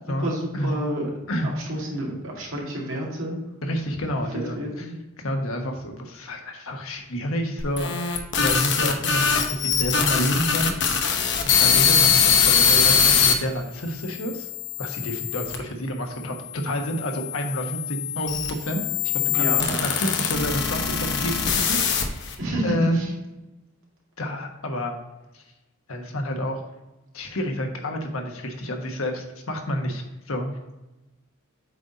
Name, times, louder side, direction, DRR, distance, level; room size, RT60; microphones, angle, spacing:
voice 1, 0.1-1.1 1.4-3.4 4.6-4.9 11.6-11.7 19.3-20.0 22.4-23.1, right 1 dB, 70° right, -2 dB, 2.2 m, -29 dB
voice 2, 3.6-4.9 5.2-7.9 8.4-14.5 14.8-18.8 19.3-23.0 24.2-24.9 25.3-25.4 25.9-26.6 27.1-30.5, equal, 80° left, 3 dB, 1.2 m, -29 dB
sound 1, 7.6-13.3 14.0-15.6 16.4-22.3, left 7 dB, 55° left, 0.8 m, -22 dB
8.1 x 4.0 x 4.0 m, 1.0 s
head